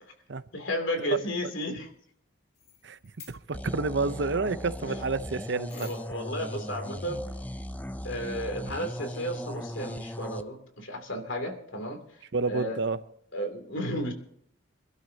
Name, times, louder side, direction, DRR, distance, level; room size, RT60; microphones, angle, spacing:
voice 1, 0.5-1.9 4.9-5.0 5.7-7.3 8.0-12.0 12.5-12.8 13.3-14.1, equal, 70° left, 2.7 m, -33 dB
sound 1, 2.5-3.6 5.7-6.3, left 6 dB, 50° left, 2.9 m, -49 dB
voice 2, 3.3-5.9 12.3-13.0, right 3 dB, 60° right, 0.6 m, -29 dB
sound 2, 3.5-10.4, left 1 dB, 10° left, 0.4 m, -38 dB
26.0 x 12.5 x 2.8 m
head